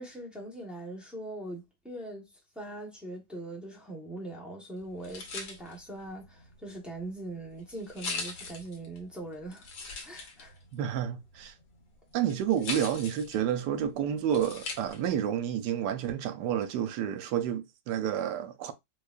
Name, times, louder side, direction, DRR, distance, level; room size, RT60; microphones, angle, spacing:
voice 1, 0.0-2.3 2.5-9.7 10.0-10.6, right 1 dB, ahead, 0.6 m, -41 dB
sound 1, 4.8-15.2, left 4 dB, 85° left, 1.6 m, -42 dB
voice 2, 10.7-11.5 12.1-18.7, right 9 dB, 75° right, 1.1 m, -30 dB
4.7 x 2.3 x 2.4 m
omnidirectional pair, 1.9 m